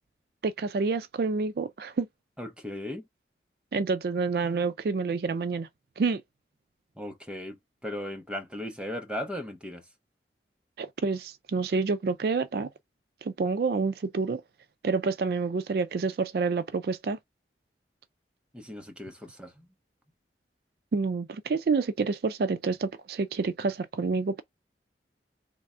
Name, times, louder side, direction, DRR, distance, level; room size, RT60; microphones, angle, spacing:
voice 1, 0.4-2.1 3.7-5.7 6.0-6.2 10.8-12.7 13.2-14.4 14.8-17.2 20.9-24.4, right 4 dB, 60° right, 0.4 m, -28 dB
voice 2, 2.4-3.1 6.9-9.9 18.5-19.7, left 1 dB, 5° right, 0.9 m, -37 dB
3.6 x 3.3 x 4.2 m
head